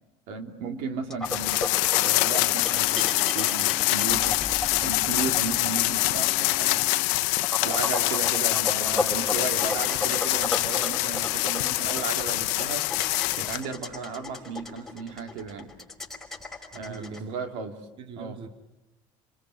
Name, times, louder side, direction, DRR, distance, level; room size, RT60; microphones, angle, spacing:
voice 1, 0.3-1.6 2.0-4.4 4.8-6.8 7.6-12.8 13.4-15.7 16.7-17.7 18.2-18.4, right 5 dB, 80° right, 6 dB, 3.0 m, -35 dB
sound 1, 1.1-17.2, left 2 dB, 5° left, 4.9 m, -34 dB
sound 2, 1.2-13.6, left 21 dB, 85° left, 1.0 m, -25 dB
Wind instrument woodwind instrument, 2.4-7.2, left 4 dB, 20° left, 2.8 m, -45 dB
voice 2, 16.7-17.3 18.0-18.5, right 5 dB, 45° right, 8 dB, 1.8 m, -41 dB
29.5 x 21.0 x 9.2 m, 1.0 s
cardioid pair, 120°, 12 cm